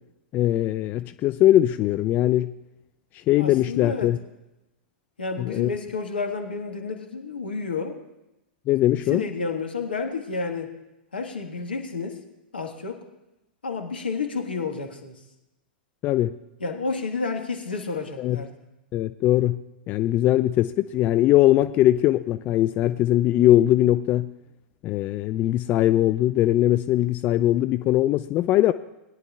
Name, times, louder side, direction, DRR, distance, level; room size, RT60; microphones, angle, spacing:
voice 1, 0.3-2.5 3.3-4.2 5.4-5.7 8.7-9.2 16.0-16.3 18.2-18.4 18.9-19.6 19.9-24.3 24.8-28.7, left 14 dB, 30° left, 12 dB, 0.3 m, -21 dB
voice 2, 3.4-4.1 5.2-8.0 8.9-10.7 11.1-12.2 12.5-13.0 13.6-15.2 16.6-18.5, left 4 dB, 80° left, 4 dB, 1.6 m, -30 dB
20.5 x 10.5 x 2.4 m, 0.96 s
figure-of-eight pair, 100°, 5 cm